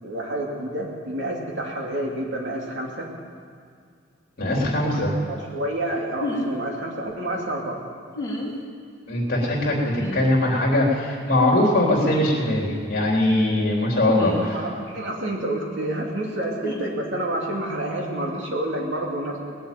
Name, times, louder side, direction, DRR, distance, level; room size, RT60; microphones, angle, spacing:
voice 1, 0.0-3.1 4.4-7.8 14.4-19.6, right 1 dB, 65° right, -1 dB, 2.7 m, -29 dB
voice 2, 4.4-5.1 9.1-14.6, left 1 dB, 50° left, -2 dB, 3.4 m, -21 dB
sound 1, 6.2-6.5 8.1-8.5 10.0-10.2 12.0-12.2 14.1-14.5 16.6-16.8, left 1 dB, 15° left, 3.3 m, -30 dB
19.5 x 7.8 x 9.2 m, 2.1 s
head